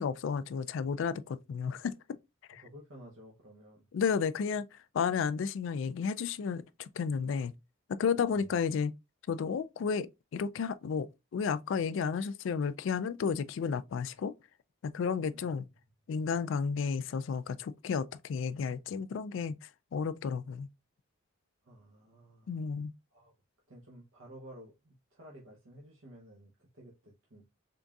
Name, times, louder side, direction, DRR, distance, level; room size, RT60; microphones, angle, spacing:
voice 1, 0.0-1.9 2.5-2.6 3.9-7.5 7.9-8.9 9.3-14.3 14.8-15.6 16.1-20.7 22.5-22.9, left 6 dB, 65° left, 0.3 m, -32 dB
voice 2, 2.6-3.9 8.3-8.5 15.3-15.6 21.6-22.6 23.1-23.3 23.7-27.4, equal, 70° right, 0.8 m, -53 dB
3.9 x 3.6 x 2.3 m
head